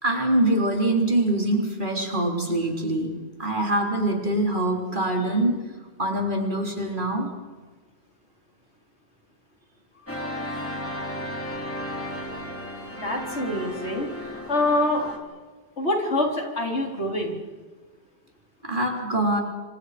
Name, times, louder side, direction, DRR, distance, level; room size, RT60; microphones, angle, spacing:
voice 1, 0.0-3.1 3.4-5.6 6.0-7.3 18.6-19.4, right 1 dB, 45° right, 1 dB, 3.9 m, -24 dB
sound 1, 10.1-15.2, left 1 dB, 10° left, 3.3 m, -34 dB
voice 2, 13.0-15.2 15.8-17.4, left 1 dB, 80° left, 1 dB, 4.4 m, -26 dB
26.5 x 26.0 x 5.1 m, 1.4 s
omnidirectional pair, 1.1 m